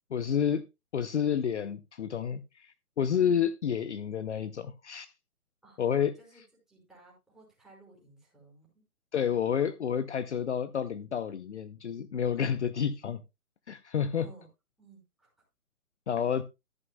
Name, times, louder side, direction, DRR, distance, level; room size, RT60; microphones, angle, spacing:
voice 1, 0.1-0.6 0.9-5.1 5.8-6.1 9.1-13.2 13.7-14.3 16.1-16.4, left 8 dB, 50° left, 0.8 m, -29 dB
voice 2, 6.1-8.8 13.9-14.5 14.8-15.3 16.2-16.3, right 2 dB, ahead, 4.9 m, -57 dB
13.5 x 10.5 x 2.3 m
hypercardioid pair, 150°, 44 cm